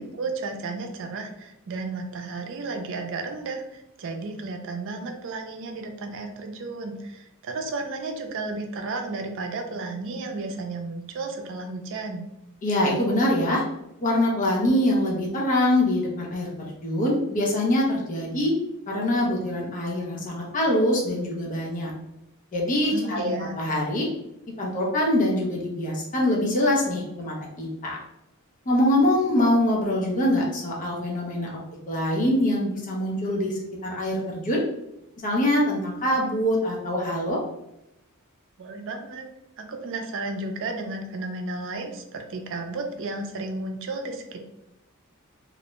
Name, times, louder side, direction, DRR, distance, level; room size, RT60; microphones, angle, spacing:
voice 1, 0.0-12.3 22.9-23.6 38.6-39.3 39.6-44.4, right 3 dB, 60° right, 4 dB, 0.4 m, -33 dB
voice 2, 12.6-13.6 14.0-16.5 16.8-18.5 18.9-21.9 22.5-24.1 24.6-28.0 28.7-31.5 31.9-34.6 35.2-37.4, left 1 dB, 35° left, -3 dB, 0.5 m, -24 dB
2.4 x 2.1 x 2.9 m, 0.85 s
head